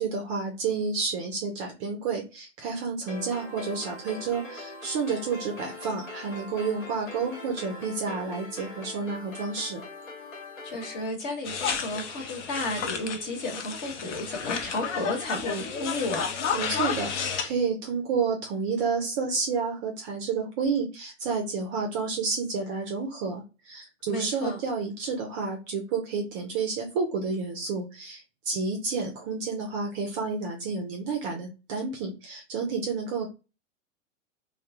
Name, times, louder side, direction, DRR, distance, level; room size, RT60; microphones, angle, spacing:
voice 1, 0.0-9.8 16.5-33.3, right 5 dB, 25° right, 0.4 m, -30 dB
sound 1, 3.1-11.1, left 1 dB, 80° left, 1.1 m, -42 dB
voice 2, 10.6-16.3 24.1-24.6, left 2 dB, 45° left, 1.1 m, -32 dB
sound 2, 11.4-17.5, left 6 dB, 65° left, 0.6 m, -32 dB
2.1 x 2.0 x 2.8 m
figure-of-eight pair, 100°, 38 cm